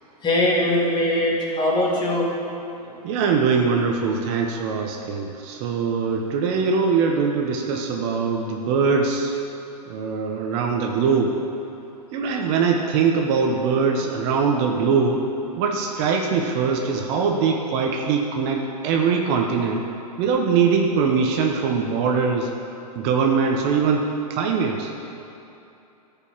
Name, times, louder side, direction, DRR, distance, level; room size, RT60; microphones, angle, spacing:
voice 1, 0.2-2.3, left 1 dB, 20° left, -4 dB, 2.6 m, -21 dB
voice 2, 2.8-9.4 9.9-11.4 12.1-15.2 15.6-19.9 20.2-22.5 22.9-24.9, right 5 dB, 40° right, 2 dB, 1.1 m, -22 dB
13.0 x 5.5 x 7.3 m, 2.8 s
hypercardioid pair, 115°, 21 cm